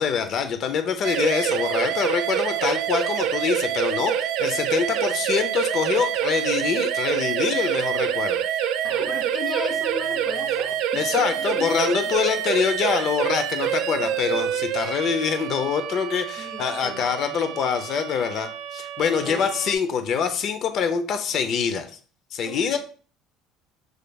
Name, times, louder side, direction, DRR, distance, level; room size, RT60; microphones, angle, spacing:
voice 1, 0.0-8.4 10.9-21.9 22.3-22.8, left 6 dB, 55° left, 9 dB, 0.6 m, -25 dB
sound 1, 1.0-19.7, right 9 dB, 75° right, 0.4 m, -26 dB
voice 2, 8.8-11.7 14.0-14.4 16.4-17.1 19.1-19.5 22.5-22.8, left 2 dB, 20° left, 2 dB, 1.0 m, -36 dB
6.3 x 3.3 x 2.3 m, 0.41 s
cardioid pair, 115°, 0 cm